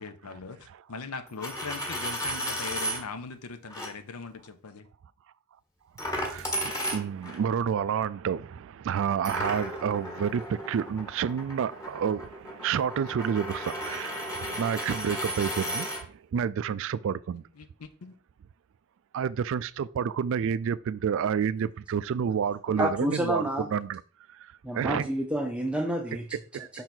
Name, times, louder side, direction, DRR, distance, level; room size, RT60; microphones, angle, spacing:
voice 1, 0.0-4.9 14.4-14.7 17.5-18.2, left 4 dB, 80° left, 0.7 m, -40 dB
Coin (dropping), 1.3-3.0 3.7-3.9 6.0-7.4 9.2-16.0, equal, 15° left, 1.3 m, -34 dB
voice 2, 6.0-17.4 19.1-24.0 24.4-24.5 24.7-25.1 26.1-26.2 26.5-26.8, right 7 dB, 60° right, 0.3 m, -29 dB
voice 3, 22.7-23.7 24.6-26.8, equal, 5° right, 0.5 m, -30 dB
5.5 x 3.9 x 4.4 m
head